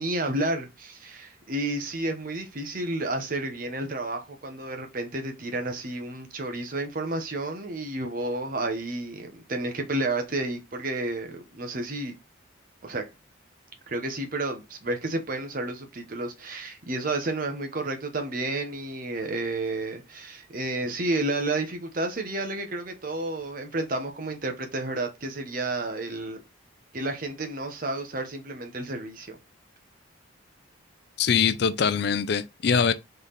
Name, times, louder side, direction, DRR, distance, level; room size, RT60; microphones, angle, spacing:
voice 1, 0.0-12.1 12.8-13.0 13.9-26.4 26.9-29.4, right 2 dB, 45° right, 0.9 m, -31 dB
voice 2, 31.2-32.9, left 6 dB, 60° left, 0.4 m, -23 dB
4.0 x 3.3 x 4.0 m
head